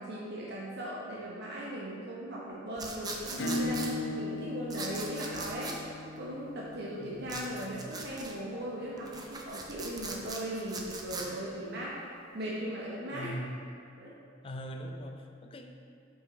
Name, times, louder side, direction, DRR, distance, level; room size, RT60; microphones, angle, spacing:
voice 1, 0.0-5.8 6.1-12.0 12.3-13.3 14.0-14.1, right 1 dB, 60° right, -6 dB, 0.8 m, -38 dB
sound 1, 2.8-3.9 4.7-5.8 7.3-8.3 9.0-11.3, right 3 dB, 20° right, 0.5 m, -40 dB
Acoustic guitar / Strum, 3.4-8.6, left 2 dB, 85° left, 0.7 m, -38 dB
voice 2, 7.0-7.9 13.1-13.7 14.4-15.7, equal, 30° left, 4 dB, 0.4 m, -42 dB
5.7 x 4.8 x 4.1 m, 2.4 s
head